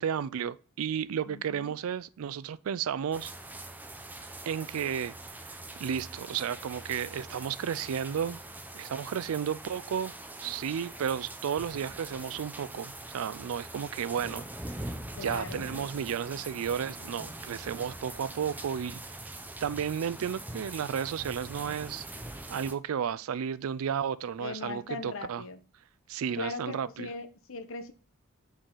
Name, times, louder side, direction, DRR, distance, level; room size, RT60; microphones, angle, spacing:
voice 1, 0.0-3.3 4.5-5.1 5.4-8.4 8.7-10.1 10.4-14.9 15.2-19.0 19.6-22.1 22.5-25.4 26.1-27.1, right 8 dB, 70° right, 0.4 m, -33 dB
voice 2, 1.3-1.7 15.2-15.6 24.4-25.6 26.4-27.9, left 3 dB, 65° left, 0.8 m, -39 dB
sound 1, 3.1-22.7, right 2 dB, 10° right, 0.5 m, -43 dB
6.5 x 4.7 x 3.8 m
head